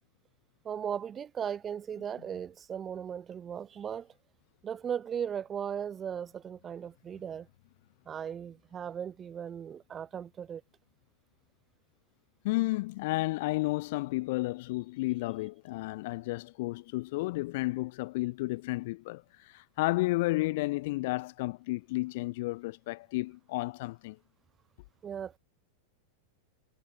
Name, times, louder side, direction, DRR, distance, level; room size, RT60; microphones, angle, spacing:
voice 1, 0.6-4.1 4.6-7.5 8.1-10.6 25.0-25.4, right 8 dB, 25° right, 3.8 m, -37 dB
voice 2, 12.4-24.2, left 21 dB, 50° left, 1.2 m, -32 dB
figure-of-eight pair, 90°, 0 cm